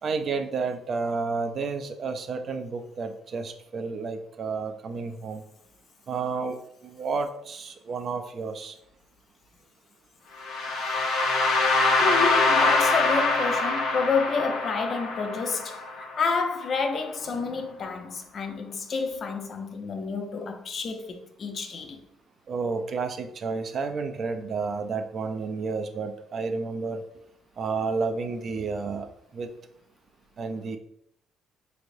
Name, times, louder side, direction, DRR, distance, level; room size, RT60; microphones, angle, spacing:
voice 1, 0.0-5.4 6.1-8.8 22.5-27.0 27.6-29.5 30.4-30.8, right 4 dB, 55° right, 0.4 m, -31 dB
sound 1, 10.4-16.4, left 3 dB, 85° left, 0.8 m, -24 dB
voice 2, 12.0-22.0, left 4 dB, 50° left, 0.5 m, -29 dB
3.6 x 3.2 x 2.6 m
cardioid pair, 80°, 0 cm